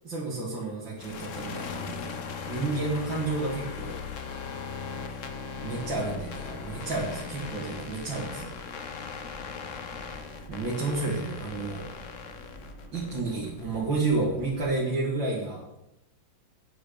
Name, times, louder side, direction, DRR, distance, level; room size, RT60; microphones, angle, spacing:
voice 1, 0.0-2.1 2.5-4.0 5.6-8.6 10.5-11.9 12.9-15.6, right 3 dB, 80° right, -6 dB, 3.1 m, -30 dB
sound 1, 1.0-13.8, left 5 dB, 50° left, 1.1 m, -39 dB
sound 2, 5.8-14.7, left 1 dB, 75° left, 4.0 m, -48 dB
9.6 x 7.9 x 6.8 m, 0.89 s
omnidirectional pair, 2.0 m